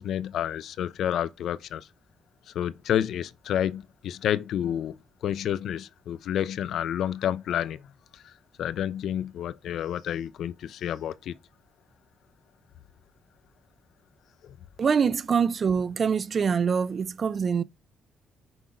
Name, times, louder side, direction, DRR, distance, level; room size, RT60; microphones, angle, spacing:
voice 1, 0.0-1.9 2.5-5.0 5.2-7.8 8.1-8.2 8.6-11.3 14.4-14.5, left 10 dB, 75° left, 0.5 m, -29 dB
voice 2, 14.8-17.6, right 6 dB, 45° right, 0.4 m, -24 dB
6.1 x 3.8 x 4.9 m
cardioid pair, 90°, 0 cm